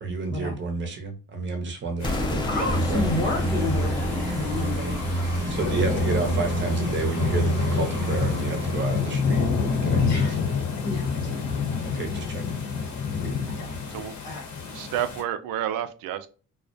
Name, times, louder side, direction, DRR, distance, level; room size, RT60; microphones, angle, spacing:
voice 1, 0.0-3.0 5.5-10.4 11.8-12.4, right 4 dB, 35° right, 0.6 m, -31 dB
sound 1, 2.0-15.2, left 5 dB, 55° left, 0.8 m, -29 dB
sound 2, 2.0-7.8, left 2 dB, 15° left, 0.4 m, -31 dB
voice 2, 2.5-5.8 10.0-10.4 10.8-12.3 13.2-14.4, left 2 dB, 85° left, 1.2 m, -32 dB
sound 3, 2.7-9.2, right 1 dB, 10° right, 0.8 m, -28 dB
voice 3, 14.7-16.3, right 10 dB, 80° right, 0.5 m, -29 dB
2.3 x 2.1 x 2.5 m
cardioid pair, 120°, 34 cm